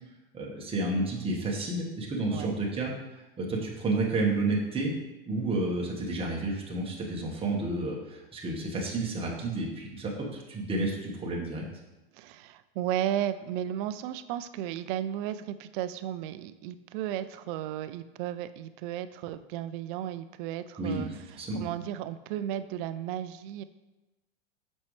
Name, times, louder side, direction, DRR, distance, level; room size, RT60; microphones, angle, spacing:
voice 1, 0.3-2.9 3.4-4.9 5.3-11.6 20.8-21.6, right 2 dB, 20° right, -1 dB, 1.4 m, -31 dB
voice 2, 12.1-21.1 21.5-23.6, right 11 dB, 60° right, 12 dB, 0.5 m, -34 dB
7.1 x 5.4 x 3.2 m, 1.1 s
supercardioid pair, 120°, 30 cm